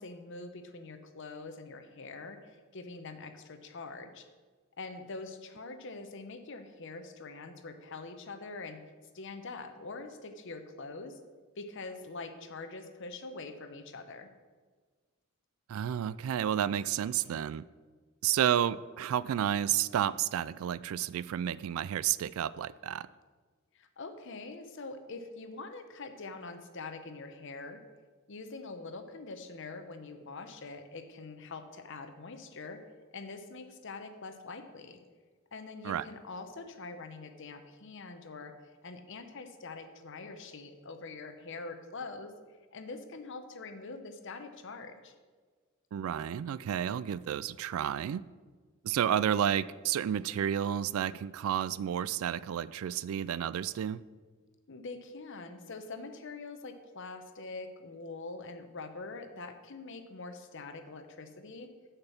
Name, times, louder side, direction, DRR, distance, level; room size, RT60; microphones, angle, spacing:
voice 1, 0.0-4.2 4.8-8.8 9.1-11.2 11.6-14.3 23.7-27.8 28.3-32.8 33.1-35.0 35.5-38.5 38.8-42.3 42.7-45.1 54.7-61.7, left 3 dB, 60° left, 8 dB, 0.8 m, -44 dB
voice 2, 15.7-17.6 18.2-23.1 35.8-36.0 45.9-48.2 48.8-54.0, right 9 dB, 75° right, 17 dB, 0.3 m, -31 dB
6.7 x 5.9 x 7.2 m, 1.4 s
head